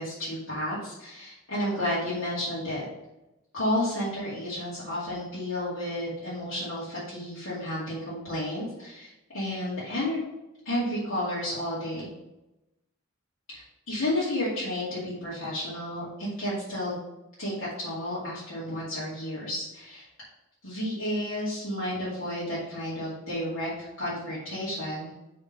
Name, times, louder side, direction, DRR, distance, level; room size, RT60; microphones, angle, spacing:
voice 1, 0.0-2.8 3.5-10.2 10.6-12.1 13.5-17.0 17.4-20.1 20.6-25.1, left 1 dB, 85° left, -11 dB, 2.4 m, -31 dB
5.2 x 4.2 x 5.3 m, 0.96 s
head